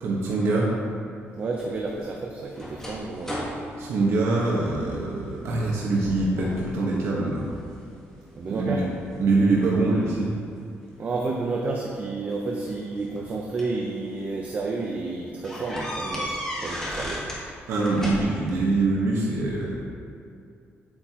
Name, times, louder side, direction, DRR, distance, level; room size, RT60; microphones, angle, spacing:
voice 1, 0.0-0.7 3.8-7.4 8.5-8.8 9.2-10.3 17.7-19.7, right 3 dB, 75° right, -5 dB, 1.3 m, -24 dB
voice 2, 1.4-3.5 8.3-8.9 11.0-17.3, right 3 dB, 35° right, -1 dB, 0.7 m, -30 dB
sound 1, 1.5-5.0 5.4-5.8 6.0-6.7 7.2-7.9 8.5-9.9 11.1-11.2 12.4-13.8 14.4-14.5 14.8-14.9 15.4-17.5 17.7-18.6, equal, 10° left, 1.4 m, -35 dB
9.2 x 8.5 x 3.0 m, 2.4 s
cardioid pair, 170°, 5 cm